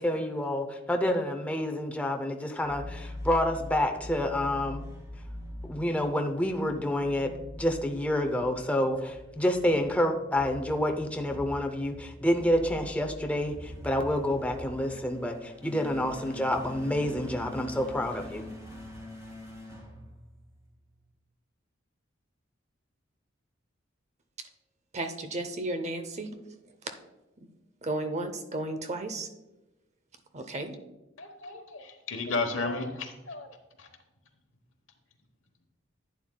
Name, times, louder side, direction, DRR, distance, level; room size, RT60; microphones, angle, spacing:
voice 1, 0.0-4.8 5.7-18.5, left 1 dB, 5° left, 4 dB, 0.6 m, -28 dB
sound 1, 2.6-20.7, left 1 dB, 15° right, 1.9 m, -44 dB
voice 2, 24.9-26.4 27.4-27.5 27.8-29.3 30.3-30.7, right 2 dB, 35° right, 8 dB, 0.7 m, -33 dB
voice 3, 31.2-33.9, left 3 dB, 70° left, 6 dB, 1.1 m, -34 dB
11.0 x 9.2 x 2.3 m, 0.99 s
head